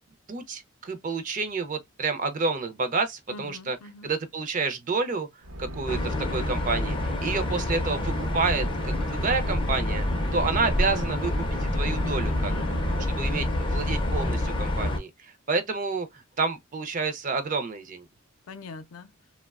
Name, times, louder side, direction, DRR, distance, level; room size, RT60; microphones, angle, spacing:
voice 1, 0.3-3.8 4.0-5.3 5.6-10.0 10.3-11.4 11.7-12.5 13.1-16.1 16.4-18.0, right 4 dB, 40° right, 0.4 m, -29 dB
voice 2, 3.3-4.1 12.5-13.5 18.5-19.1, left 3 dB, 85° left, 0.4 m, -44 dB
sound 1, 5.4-13.0, equal, 80° right, 0.7 m, -40 dB
sound 2, 5.9-15.0, left 1 dB, 25° left, 0.4 m, -27 dB
2.8 x 2.1 x 2.3 m
head